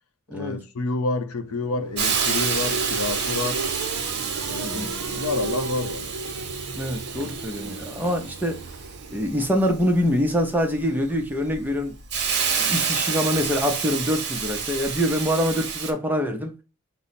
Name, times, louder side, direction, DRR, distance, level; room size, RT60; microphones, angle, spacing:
voice 1, 0.3-3.7 4.5-6.2, left 3 dB, 80° left, 0.6 m, -29 dB
sound 1, 1.4-10.1, right 3 dB, 70° right, 0.5 m, -35 dB
Hiss, 2.0-15.9, right 6 dB, 50° right, 0.9 m, -29 dB
voice 2, 6.7-8.6 9.1-11.9 12.6-16.5, equal, 10° right, 0.5 m, -25 dB
5.2 x 2.0 x 4.1 m
head